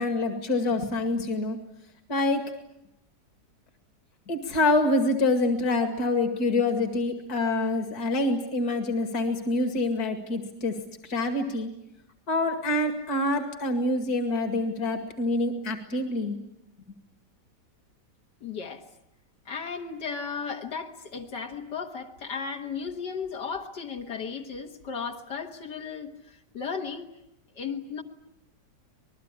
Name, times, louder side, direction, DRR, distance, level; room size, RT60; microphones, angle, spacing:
voice 1, 0.0-1.6 2.1-2.4 4.3-10.8 11.0-11.7 12.3-16.4, left 2 dB, 60° left, 6 dB, 2.7 m, -26 dB
voice 2, 18.4-18.8 19.5-27.1 27.6-28.0, left 5 dB, 80° left, 2 dB, 2.2 m, -35 dB
26.5 x 20.5 x 10.0 m, 0.84 s
omnidirectional pair, 1.8 m